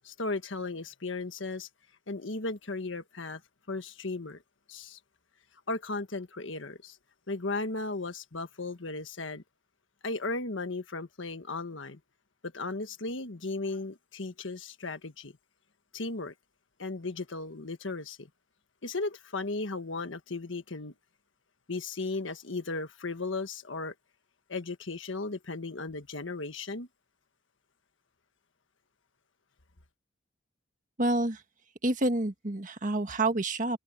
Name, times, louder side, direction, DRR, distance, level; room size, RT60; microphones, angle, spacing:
voice 1, 0.0-1.7 2.1-3.4 3.7-4.4 4.7-5.0 5.7-7.0 7.3-9.4 10.0-12.0 12.4-15.3 15.9-16.3 16.8-18.3 18.8-20.9 21.7-23.9 24.5-26.9, left 3 dB, 75° left, 1.5 m, -36 dB
voice 2, 31.0-31.4 31.8-33.8, right 2 dB, 40° right, 1.7 m, -28 dB
head